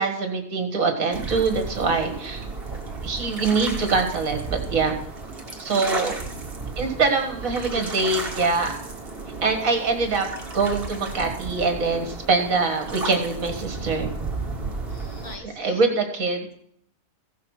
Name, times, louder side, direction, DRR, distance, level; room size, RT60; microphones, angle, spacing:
voice 1, 0.0-2.4 3.0-4.9 5.6-6.2 6.8-8.8 9.4-10.3 10.5-14.1 15.4-16.5, right 4 dB, 60° right, 4 dB, 2.1 m, -24 dB
sound 1, 1.1-15.4, right 3 dB, 40° right, 1.9 m, -34 dB
voice 2, 2.8-3.2 5.4-5.7 6.3-7.0 9.2-9.4 14.6-15.8, left 2 dB, 60° left, 3 dB, 2.1 m, -46 dB
15.5 x 5.9 x 6.4 m, 0.69 s
omnidirectional pair, 1.6 m